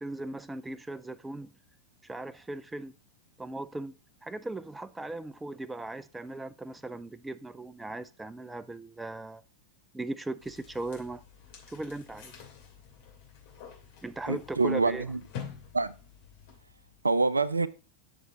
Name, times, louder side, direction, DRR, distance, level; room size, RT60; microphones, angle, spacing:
voice 1, 0.0-1.5 2.0-2.9 3.4-3.9 4.2-9.4 9.9-11.2 11.7-12.3 14.0-15.1, right 2 dB, 10° right, 0.4 m, -38 dB
sound 1, 10.4-17.0, left 7 dB, 50° left, 2.6 m, -48 dB
voice 2, 14.3-15.2 15.7-15.9 17.0-17.7, right 3 dB, 80° right, 0.4 m, -26 dB
8.9 x 6.4 x 2.9 m
figure-of-eight pair, 90°, 0 cm